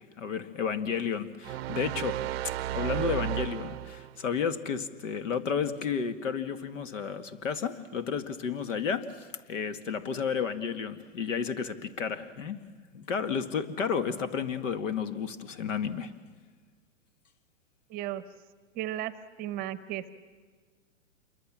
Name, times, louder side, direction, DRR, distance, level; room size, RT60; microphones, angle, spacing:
voice 1, 0.0-2.2 2.7-12.6 12.9-16.1, left 6 dB, 75° left, 10 dB, 2.0 m, -32 dB
sound 1, 1.4-4.2, right 14 dB, 50° right, 0.6 m, -33 dB
voice 2, 17.9-18.2 18.8-19.1 19.4-20.1, right 13 dB, 25° right, 15 dB, 0.8 m, -34 dB
27.5 x 23.0 x 7.5 m, 1.5 s
hypercardioid pair, 140°, 38 cm